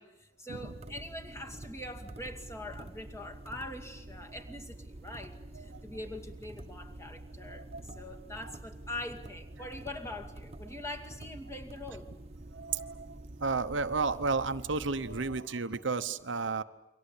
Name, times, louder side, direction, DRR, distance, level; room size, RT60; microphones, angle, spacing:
voice 1, 0.0-12.4, left 1 dB, 15° left, 3 dB, 2.5 m, -43 dB
sound 1, 0.5-15.4, right 1 dB, 35° right, 1.3 m, -47 dB
voice 2, 7.5-7.8 12.5-13.1 13.4-16.6, right 4 dB, 70° right, 10 dB, 1.0 m, -32 dB
29.0 x 24.0 x 8.5 m, 0.99 s
head